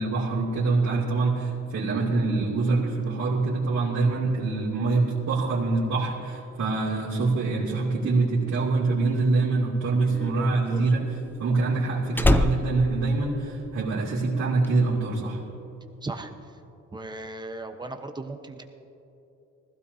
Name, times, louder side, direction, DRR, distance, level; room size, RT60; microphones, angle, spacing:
voice 1, 0.0-15.4, right 3 dB, 60° right, -9 dB, 2.8 m, -25 dB
Slam, 9.2-14.0 14.2-14.7, left 1 dB, 5° left, 0.5 m, -26 dB
voice 2, 16.0-16.6 16.9-18.6, right 2 dB, 15° right, 5 dB, 1.0 m, -37 dB
20.0 x 16.0 x 2.8 m, 3.0 s
cardioid pair, 90°, 30 cm